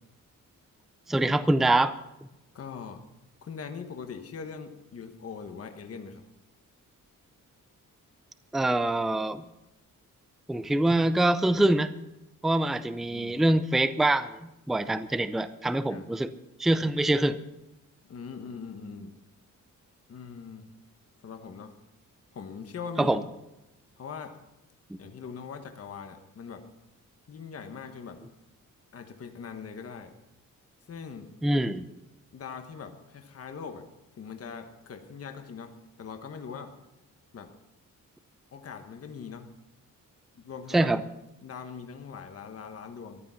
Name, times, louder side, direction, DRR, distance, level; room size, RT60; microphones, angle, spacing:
voice 1, 1.1-1.9 8.5-9.4 10.5-11.9 12.4-14.4 14.7-16.3 16.6-17.4 23.0-23.2 31.4-31.9 40.7-41.0, right 1 dB, ahead, 13 dB, 0.4 m, -24 dB
voice 2, 2.5-3.0 3.4-6.2 13.1-13.4 15.9-16.1 18.1-19.2 20.1-20.7 21.2-21.7 22.3-23.2 24.0-24.3 25.0-26.6 27.3-28.2 28.9-30.1 30.9-31.3 32.3-33.8 34.2-36.7 37.3-37.5 38.5-39.5 40.3-40.9 41.4-43.2, left 6 dB, 45° left, 6 dB, 1.3 m, -41 dB
14.0 x 11.5 x 5.7 m, 0.93 s
wide cardioid pair, 135°, 32 cm